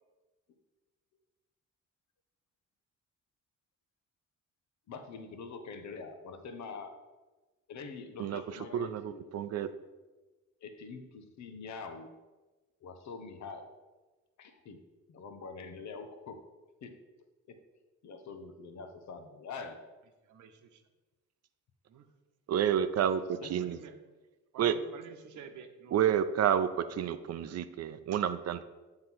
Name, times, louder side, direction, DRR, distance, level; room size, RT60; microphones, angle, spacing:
voice 1, 4.9-6.9 7.7-9.3 10.6-12.1 12.8-13.7 14.4-14.8 15.1-16.4 16.8-17.0 17.5-17.6 18.0-19.8 23.4-23.5, left 4 dB, 65° left, 7 dB, 1.0 m, -44 dB
voice 2, 8.7-9.7 22.5-23.8 24.6-24.7 25.9-28.6, right 9 dB, 55° right, 11 dB, 0.5 m, -29 dB
voice 3, 20.3-20.8 21.9-22.1 23.6-24.0 24.5-26.0, right 6 dB, 75° right, 7 dB, 0.9 m, -50 dB
7.6 x 3.9 x 6.0 m, 1.2 s
cardioid pair, 90°, 30 cm